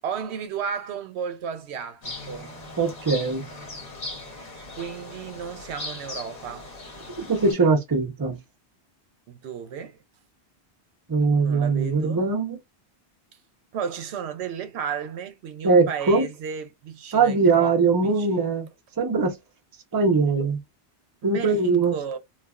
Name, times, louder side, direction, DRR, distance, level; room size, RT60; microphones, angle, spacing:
voice 1, 0.0-2.5 4.4-6.7 9.3-10.0 11.4-12.2 13.7-17.7 18.0-18.3 21.2-22.2, right 7 dB, 80° right, 0.8 m, -33 dB
sound 1, 2.0-7.5, left 2 dB, 40° left, 0.9 m, -39 dB
voice 2, 2.8-3.4 7.2-8.4 11.1-12.6 15.6-16.3 17.1-18.7 19.0-19.4 19.9-20.6 21.2-21.9, right 4 dB, 25° right, 0.5 m, -21 dB
3.2 x 2.2 x 2.3 m
omnidirectional pair, 1.1 m